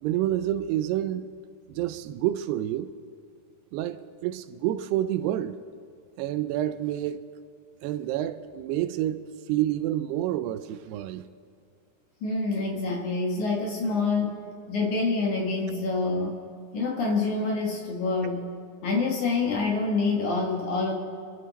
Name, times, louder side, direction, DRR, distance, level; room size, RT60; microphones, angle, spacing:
voice 1, 0.0-1.3 1.7-2.9 3.7-5.6 6.2-7.3 7.8-11.3, right 12 dB, 85° right, 2.6 m, -28 dB
voice 2, 12.2-14.4 14.7-16.4 16.7-18.5 18.8-20.9, left 3 dB, 60° left, 2.3 m, -26 dB
26.0 x 13.0 x 4.1 m
omnidirectional pair, 4.8 m